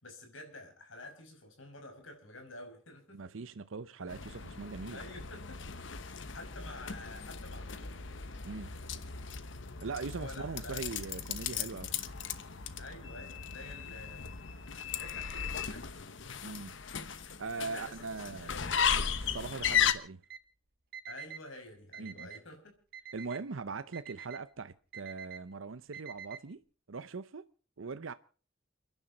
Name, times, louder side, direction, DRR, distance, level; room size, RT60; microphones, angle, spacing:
voice 1, 0.0-3.2 4.9-5.7 6.0-8.1 10.1-11.0 12.8-14.4 15.0-15.9 17.6-18.7 21.1-22.7, left 2 dB, 85° left, 5.5 m, -49 dB
voice 2, 3.1-5.0 8.4-8.7 9.8-11.9 16.4-16.7 17.4-18.5 19.0-20.2 22.0-22.3 23.1-26.6 26.9-27.5 27.8-28.1, right 4 dB, 80° right, 0.7 m, -41 dB
sound 1, 4.1-19.9, left 7 dB, 65° left, 1.1 m, -36 dB
Alarm, 20.2-20.4 20.9-21.4 21.9-22.4 22.9-23.4 23.9-24.4 24.9-25.4 25.9-26.4, right 8 dB, 50° right, 1.3 m, -46 dB
29.5 x 10.5 x 4.0 m
head